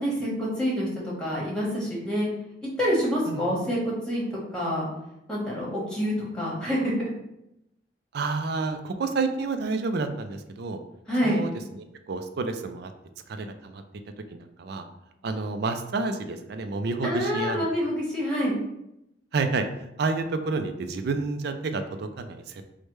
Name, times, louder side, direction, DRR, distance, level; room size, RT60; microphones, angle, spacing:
voice 1, 0.0-2.3 2.8-4.3 4.5-4.9 5.3-7.1 11.1-11.4 17.0-18.5, equal, 5° left, -5 dB, 1.2 m, -27 dB
voice 2, 3.3-3.6 8.1-10.8 11.2-12.9 13.3-13.8 14.3-14.9 15.2-17.7 19.3-19.6 20.0-22.6, right 3 dB, 60° right, 7 dB, 0.4 m, -29 dB
4.8 x 2.1 x 3.1 m, 0.83 s
head